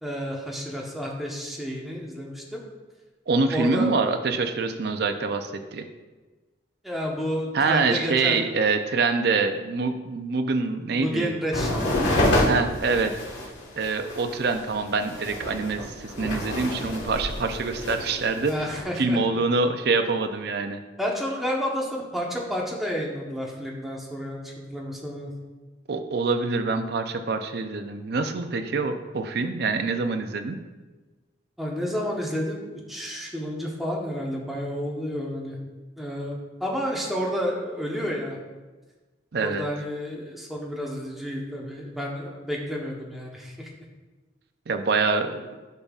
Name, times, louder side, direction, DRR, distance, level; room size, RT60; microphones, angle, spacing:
voice 1, 0.0-2.6 3.5-3.9 6.8-8.4 10.9-12.6 18.5-19.4 21.0-25.3 31.6-35.6 36.0-38.4 39.4-43.7, equal, ahead, -2 dB, 0.9 m, -31 dB
voice 2, 3.3-5.9 7.5-11.3 12.4-13.1 13.8-18.5 19.0-20.8 25.9-30.6 39.3-39.6 44.7-45.6, right 4 dB, 55° right, 7 dB, 0.5 m, -25 dB
sound 1, 11.5-18.8, left 1 dB, 90° left, 1.5 m, -28 dB
10.5 x 5.4 x 2.4 m, 1.3 s
head